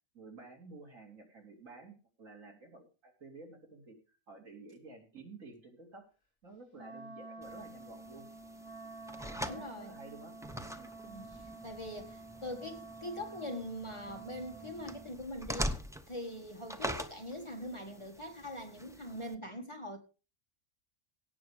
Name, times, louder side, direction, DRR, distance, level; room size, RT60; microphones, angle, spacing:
voice 1, 0.1-6.1 6.4-8.3 9.2-10.3 10.8-11.0, right 3 dB, 75° right, 3.5 m, -52 dB
Wind instrument woodwind instrument, 6.7-15.1, right 3 dB, 45° left, 4.0 m, -49 dB
sound 1, 7.4-19.3, equal, 5° right, 0.7 m, -44 dB
voice 2, 9.5-9.9 11.0-11.3 11.6-15.7 16.1-20.0, left 1 dB, 20° left, 1.8 m, -42 dB
17.5 x 6.4 x 5.1 m
omnidirectional pair, 1.4 m